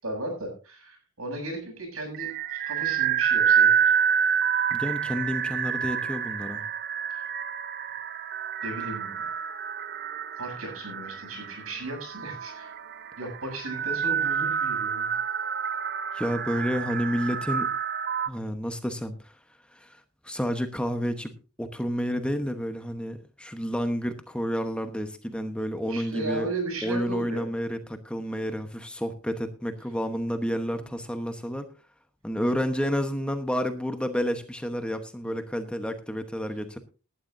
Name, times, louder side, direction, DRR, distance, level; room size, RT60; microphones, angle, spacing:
voice 1, 0.0-3.9 4.5-4.6 7.1-7.2 8.6-9.2 10.4-12.8 13.2-15.1 25.8-27.5 30.7-30.9 35.2-35.4, right 2 dB, 75° right, 2 dB, 7.2 m, -36 dB
sound 1, 2.1-18.3, right 7 dB, 45° right, 0.8 m, -28 dB
voice 2, 4.7-6.6 16.1-17.7 18.3-19.3 19.7-21.3 21.6-26.5 26.8-31.7 32.2-36.8, equal, 5° left, 7 dB, 1.0 m, -30 dB
18.5 x 11.5 x 2.6 m, 0.32 s
head